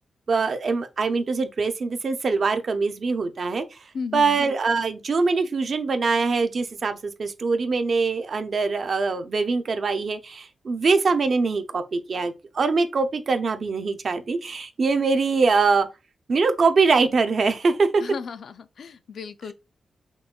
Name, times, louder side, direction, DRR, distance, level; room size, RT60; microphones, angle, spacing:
voice 1, 0.3-3.8 4.1-15.9 16.3-18.0, right 4 dB, 45° right, 0.4 m, -23 dB
voice 2, 3.9-4.4 18.0-19.5, left 5 dB, 65° left, 0.3 m, -35 dB
5.9 x 2.1 x 2.2 m
wide cardioid pair, 170°, 0 cm